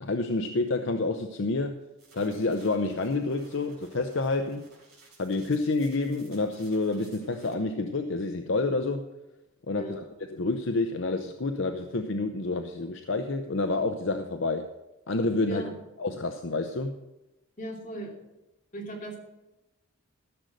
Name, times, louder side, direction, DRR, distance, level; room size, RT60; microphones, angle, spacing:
voice 1, 0.0-1.8 2.1-4.7 5.2-9.1 9.7-10.0 10.3-14.7 15.1-15.7 16.0-17.0, left 3 dB, 60° left, 7 dB, 0.6 m, -28 dB
sound 1, 2.0-7.5, right 3 dB, 50° right, 4.1 m, -57 dB
voice 2, 17.6-18.1 18.7-19.2, right 1 dB, 35° left, -2 dB, 2.7 m, -37 dB
14.5 x 6.6 x 6.4 m, 0.97 s
head